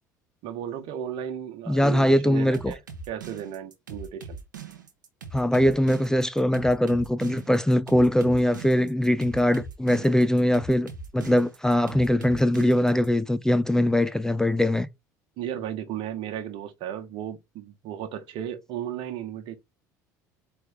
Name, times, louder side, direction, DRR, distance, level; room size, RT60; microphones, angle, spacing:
voice 1, 0.4-2.8 3.1-4.4 15.4-19.6, right 10 dB, 60° right, 1.0 m, -35 dB
voice 2, 1.7-2.7 5.3-14.9, left 1 dB, 5° left, 0.4 m, -22 dB
sound 1, 2.5-13.1, right 4 dB, 90° right, 0.8 m, -41 dB
4.4 x 3.3 x 3.4 m
hypercardioid pair, 65°, 10 cm